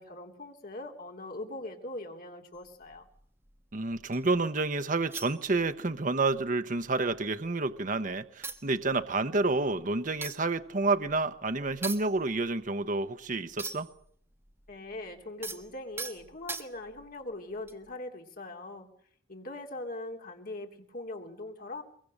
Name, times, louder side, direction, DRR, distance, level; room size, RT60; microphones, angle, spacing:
voice 1, 0.0-3.1 14.7-18.9 19.3-21.8, left 2 dB, 50° left, 3.2 m, -41 dB
sound 1, 2.5-4.4 5.1-6.0 6.3-6.5 6.8-7.7 8.1-8.2 8.4-14.1 14.3-17.1 17.6-17.9, right 3 dB, 15° right, 1.5 m, -43 dB
voice 2, 3.7-13.9, right 3 dB, 45° right, 0.9 m, -29 dB
23.0 x 23.0 x 6.6 m
head